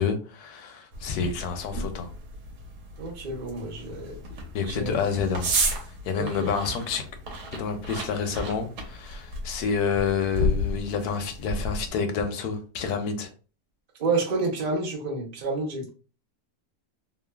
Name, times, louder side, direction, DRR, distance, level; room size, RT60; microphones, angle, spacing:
voice 1, 0.0-2.1 4.5-5.5 6.1-7.0 7.5-13.3, left 6 dB, 80° left, 1.1 m, -28 dB
sound 1, 0.9-11.9, equal, 90° right, 1.3 m, -33 dB
voice 2, 3.0-4.2 4.7-5.0 6.2-6.5 14.0-15.9, right 3 dB, 45° right, 0.5 m, -29 dB
3.1 x 2.0 x 2.2 m
omnidirectional pair, 1.7 m